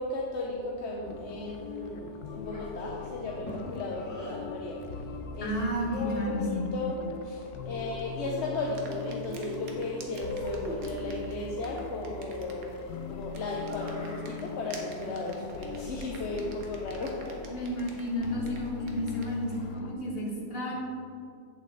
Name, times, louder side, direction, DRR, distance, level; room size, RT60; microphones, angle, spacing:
voice 1, 0.0-17.4, left 2 dB, 55° left, -2 dB, 0.9 m, -36 dB
sound 1, 1.0-19.9, left 4 dB, 80° left, 1.2 m, -41 dB
Child speech kid speaking, 2.4-4.4 5.3-6.6 7.7-8.9 9.2-11.0 13.5-14.4, left 1 dB, 10° left, 1.9 m, -41 dB
voice 2, 5.4-6.7 17.5-20.7, equal, 40° left, -3 dB, 1.7 m, -32 dB
sound 2, 8.7-19.7, right 3 dB, 70° right, 1.4 m, -51 dB
7.9 x 7.2 x 3.8 m, 2.4 s
omnidirectional pair, 1.6 m